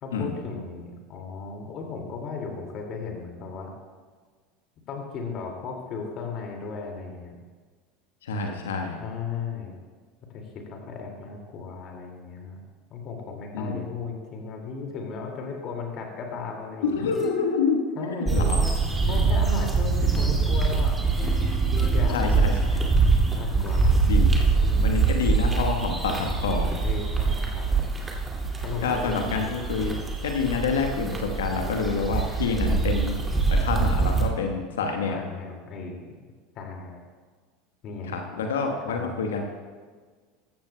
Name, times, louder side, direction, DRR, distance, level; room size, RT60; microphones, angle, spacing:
voice 1, 0.0-3.7 4.9-7.4 9.0-9.8 10.3-12.6 12.9-17.2 17.9-18.7 19.0-21.0 21.9-22.4 23.4-23.9 24.4-25.2 26.8-27.7 28.6-29.7 35.1-36.1 36.5-37.0 37.8-38.1 38.9-39.1, left 4 dB, 45° left, 1 dB, 2.1 m, -36 dB
voice 2, 8.2-9.0 13.5-13.8 16.8-17.8 18.1-18.6 22.1-22.9 24.1-24.3 24.8-26.8 28.8-29.9 30.2-33.2 33.6-35.3 38.1-39.4, left 5 dB, 75° left, 4 dB, 1.2 m, -27 dB
sound 1, 16.8-19.1 21.2-23.2 23.7-23.8, left 4 dB, 25° left, 3.2 m, -40 dB
sound 2, 18.3-34.3, right 4 dB, 15° right, 2.2 m, -24 dB
14.5 x 14.0 x 2.2 m, 1.5 s
hypercardioid pair, 75°, 0 cm